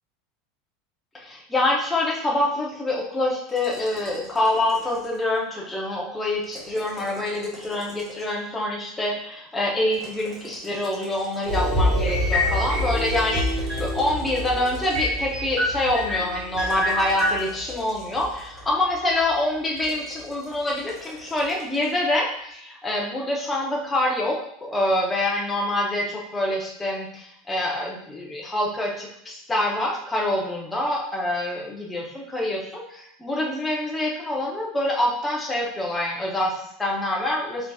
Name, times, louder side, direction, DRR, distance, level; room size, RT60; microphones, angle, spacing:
voice 1, 1.1-24.4 24.6-37.7, left 1 dB, 5° left, -3 dB, 0.6 m, -26 dB
sound 1, 3.5-5.4 6.4-8.5 9.9-11.9 12.9-15.3 16.5-18.8 19.8-22.0, left 1 dB, 10° right, 1.1 m, -45 dB
sound 2, 11.5-19.3 19.7-19.9, equal, 60° right, 1.6 m, -28 dB
sound 3, 12.1-13.0 13.3-14.0 14.3-14.4 14.9-17.4, left 1 dB, 30° right, 1.7 m, -26 dB
4.6 x 3.9 x 2.3 m, 0.71 s
supercardioid pair, 180°, 0 cm